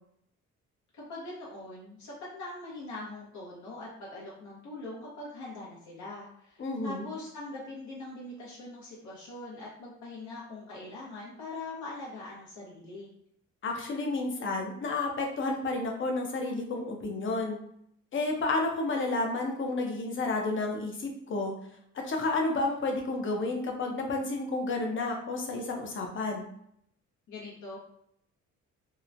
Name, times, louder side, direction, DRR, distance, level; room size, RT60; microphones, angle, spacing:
voice 1, 0.9-13.1 27.3-27.8, left 2 dB, 70° left, -6 dB, 0.9 m, -42 dB
voice 2, 6.6-7.1 13.6-17.6 18.1-21.5 21.9-26.5, left 2 dB, 40° left, 2 dB, 0.7 m, -31 dB
3.0 x 2.1 x 2.5 m, 0.71 s
cardioid pair, 90°, 30 cm